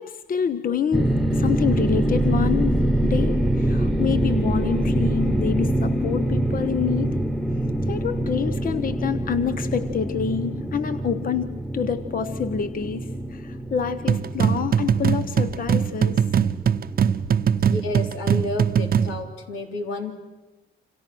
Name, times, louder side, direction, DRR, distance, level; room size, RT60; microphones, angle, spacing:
voice 1, 0.0-7.2 7.9-16.3, left 7 dB, 45° left, 10 dB, 1.1 m, -27 dB
sound 1, 0.9-18.1, right 1 dB, ahead, 1.4 m, -25 dB
sound 2, 14.1-19.2, right 8 dB, 50° right, 0.9 m, -21 dB
voice 2, 17.6-20.1, left 2 dB, 90° left, 3 dB, 3.8 m, -30 dB
29.0 x 26.5 x 6.3 m, 1.1 s
cardioid pair, 90°, 20 cm